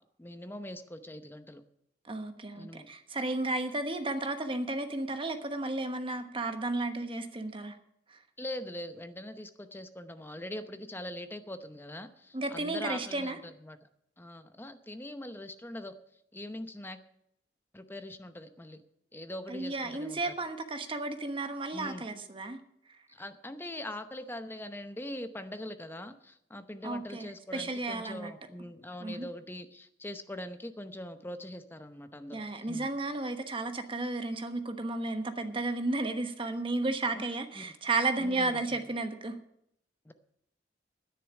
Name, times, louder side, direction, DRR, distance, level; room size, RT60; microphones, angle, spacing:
voice 1, 0.2-1.6 2.6-2.9 8.4-13.3 13.6-13.8 14.2-16.0 16.3-17.0 17.7-18.8 19.1-20.3 21.7-22.1 23.1-32.9 37.1-37.2 37.6-37.7 38.2-38.6 40.0-40.1, left 1 dB, 10° left, 9 dB, 0.8 m, -42 dB
voice 2, 2.0-7.8 8.1-8.2 12.3-13.4 19.5-22.6 26.8-28.3 29.0-29.3 32.3-39.4, right 2 dB, 30° right, 7 dB, 1.2 m, -33 dB
10.5 x 9.9 x 7.1 m, 0.74 s
head